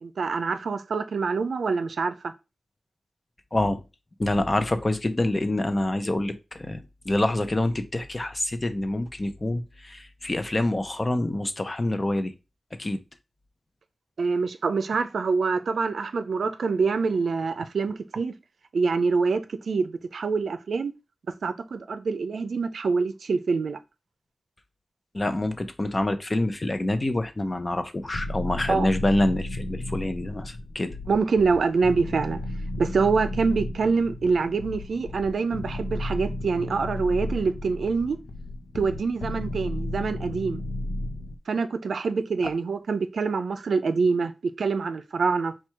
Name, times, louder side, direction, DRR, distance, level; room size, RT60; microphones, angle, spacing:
voice 1, 0.0-2.3 14.2-18.3 18.7-20.9 21.4-23.8 28.7-28.9 31.1-32.4 32.8-38.2 38.7-40.6 41.5-44.3 44.6-45.5, right 4 dB, 85° right, 0.4 m, -25 dB
voice 2, 3.5-3.8 4.2-12.3 12.8-13.0 25.1-31.0, left 1 dB, 30° left, 0.6 m, -26 dB
sound 1, 27.9-41.4, left 1 dB, 75° left, 0.7 m, -34 dB
4.5 x 2.3 x 4.5 m
wide cardioid pair, 105°, 0 cm